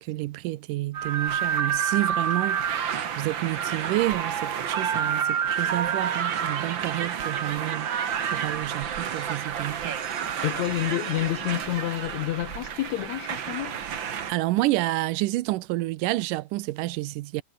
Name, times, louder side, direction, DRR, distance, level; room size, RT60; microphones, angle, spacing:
voice 1, 0.0-2.7 3.2-7.9 8.3-10.0 14.3-17.4, right 18 dB, 85° right, 2.3 m, -29 dB
sound 1, 0.9-14.3, right 8 dB, 45° right, 1.8 m, -29 dB
voice 2, 10.4-13.8, left 15 dB, 75° left, 1.9 m, -29 dB
omnidirectional pair, 3.7 m